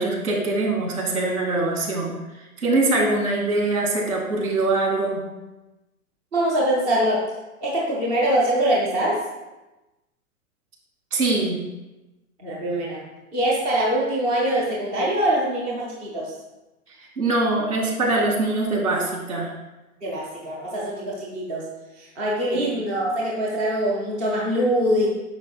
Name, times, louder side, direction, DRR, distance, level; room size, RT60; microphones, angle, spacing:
voice 1, 0.0-2.1 2.6-5.2 11.1-11.6 17.2-19.5 22.5-22.7, right 2 dB, 85° right, -1 dB, 2.4 m, -23 dB
voice 2, 6.3-7.3 7.6-9.2 12.4-13.0 13.3-16.3 20.0-21.7 22.0-25.1, right 1 dB, 10° right, -4 dB, 0.3 m, -23 dB
9.6 x 5.6 x 2.2 m, 1.0 s
hypercardioid pair, 130°, 43 cm